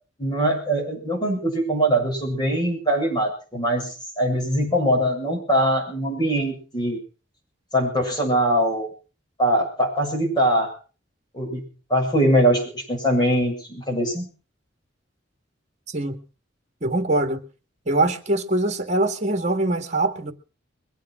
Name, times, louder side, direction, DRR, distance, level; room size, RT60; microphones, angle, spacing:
voice 1, 0.2-7.0 7.7-8.9 9.4-10.7 11.3-14.3, right 1 dB, 25° left, 7.2 m, -22 dB
voice 2, 15.9-16.2 16.8-17.4 17.9-20.3, right 2 dB, 35° right, 1.9 m, -23 dB
22.5 x 9.3 x 6.1 m
head